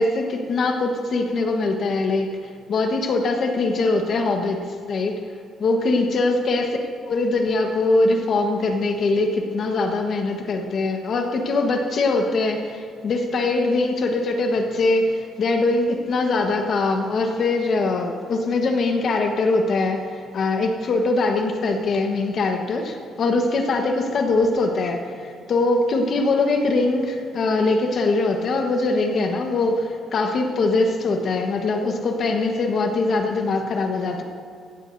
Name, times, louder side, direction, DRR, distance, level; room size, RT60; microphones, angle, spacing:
voice 1, 0.0-2.4 2.7-5.2 5.6-6.8 7.1-34.2, left 3 dB, 50° left, 3 dB, 1.2 m, -22 dB
16.5 x 14.0 x 2.7 m, 2.2 s
cardioid pair, 110°, 0 cm